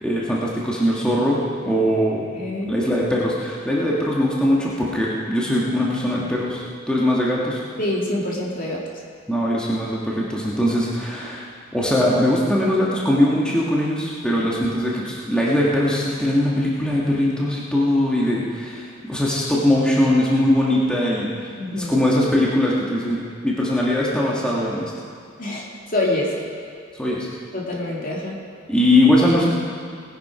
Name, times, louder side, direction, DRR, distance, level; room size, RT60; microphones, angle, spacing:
voice 1, 0.0-2.3 2.7-7.6 9.3-11.4 11.7-21.3 21.7-24.9 27.0-27.3 28.7-29.5, left 1 dB, 5° left, -6 dB, 1.7 m, -21 dB
voice 2, 2.3-2.8 7.8-8.8 21.6-22.0 25.4-25.7 25.9-26.4 27.5-28.4, left 1 dB, 45° left, -3 dB, 2.7 m, -25 dB
19.5 x 10.0 x 5.0 m, 2.2 s
head